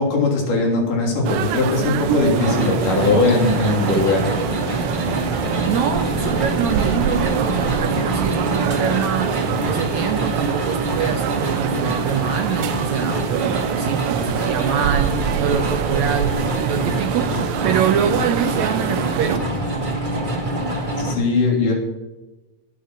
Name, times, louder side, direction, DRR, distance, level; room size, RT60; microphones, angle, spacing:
voice 1, 0.0-4.3 21.0-21.7, left 3 dB, 70° left, 0 dB, 4.5 m, -19 dB
sound 1, 1.2-19.4, right 11 dB, 90° right, 2.4 m, -26 dB
sound 2, 2.3-21.1, right 1 dB, 20° right, 1.3 m, -25 dB
voice 2, 5.7-19.5, right 8 dB, 70° right, 6 dB, 1.8 m, -25 dB
19.0 x 6.9 x 6.2 m, 1.1 s
omnidirectional pair, 3.8 m